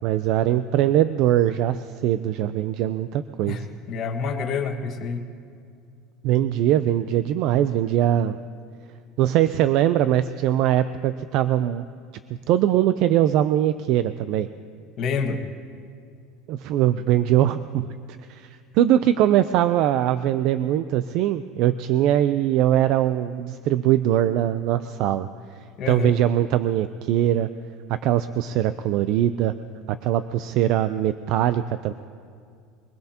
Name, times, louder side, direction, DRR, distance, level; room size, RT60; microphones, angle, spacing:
voice 1, 0.0-3.6 6.2-8.4 9.2-11.8 12.5-14.5 16.5-18.0 18.3-25.3 25.9-27.5 27.9-29.5 29.9-31.9, right 12 dB, 60° right, 12 dB, 0.4 m, -21 dB
voice 2, 3.5-5.2 15.0-15.4 25.8-26.2, left 5 dB, 45° left, 3 dB, 1.6 m, -28 dB
24.5 x 20.0 x 2.9 m, 2.3 s
supercardioid pair, 135°, 0 cm